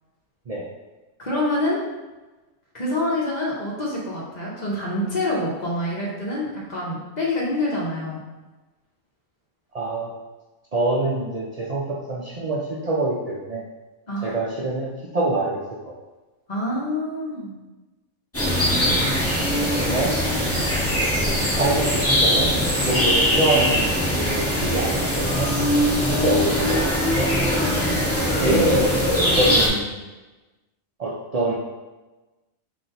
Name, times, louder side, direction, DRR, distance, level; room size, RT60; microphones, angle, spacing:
voice 1, 1.2-1.8 2.7-8.2 14.1-14.4 16.5-17.6 20.5-20.6 28.4-28.9, left 1 dB, 35° left, -5 dB, 1.0 m, -26 dB
voice 2, 9.7-10.1 10.7-13.6 14.2-15.9 19.6-20.1 21.5-25.5 26.1-26.9 27.2-27.6 28.4-30.0 31.0-31.5, right 2 dB, 90° right, -5 dB, 0.3 m, -25 dB
sound 1, 18.3-29.7, equal, 10° left, 0.8 m, -21 dB
3.9 x 2.7 x 4.3 m, 1.2 s
omnidirectional pair, 1.4 m